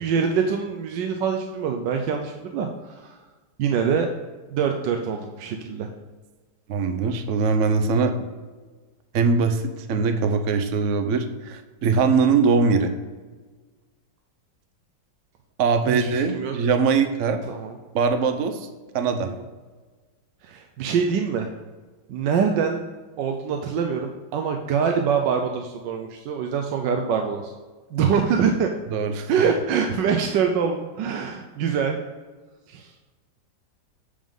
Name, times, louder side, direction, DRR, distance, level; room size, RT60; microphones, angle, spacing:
voice 1, 0.0-3.2 3.6-4.1 4.5-5.9 15.9-16.5 17.5-17.7 19.2-19.4 20.4-21.5 22.1-22.8 23.2-27.5 27.9-28.7 29.3-32.0 32.7-32.9, right 6 dB, 85° right, 4 dB, 1.3 m, -24 dB
voice 2, 6.7-8.2 9.1-12.9 15.6-17.4 17.9-18.7 18.9-19.3 28.9-29.3, right 5 dB, 60° right, 7 dB, 0.8 m, -22 dB
8.6 x 3.7 x 5.3 m, 1.3 s
omnidirectional pair, 1.9 m